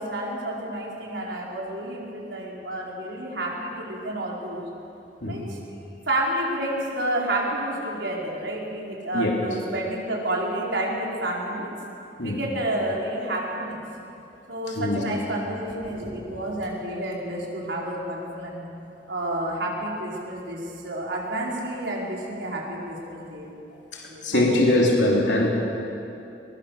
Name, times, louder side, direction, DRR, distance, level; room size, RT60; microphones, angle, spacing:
voice 1, 0.0-4.7 5.2-5.6 6.1-11.7 12.2-13.8 14.5-18.7 19.1-23.5 24.1-24.8, right 1 dB, 85° right, -3 dB, 4.9 m, -30 dB
voice 2, 23.9-25.5, left 1 dB, 90° left, -2 dB, 3.4 m, -22 dB
22.0 x 21.5 x 6.7 m, 2.8 s
head